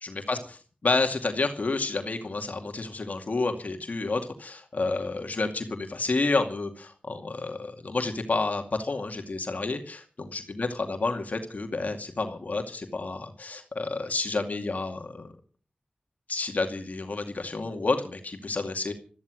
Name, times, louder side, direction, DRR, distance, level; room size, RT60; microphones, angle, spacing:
voice 1, 0.0-0.4 0.8-15.3 16.3-18.9, left 3 dB, 60° left, 4 dB, 2.3 m, -30 dB
14.0 x 13.0 x 6.4 m, 0.41 s
cardioid pair, 50°, 3 cm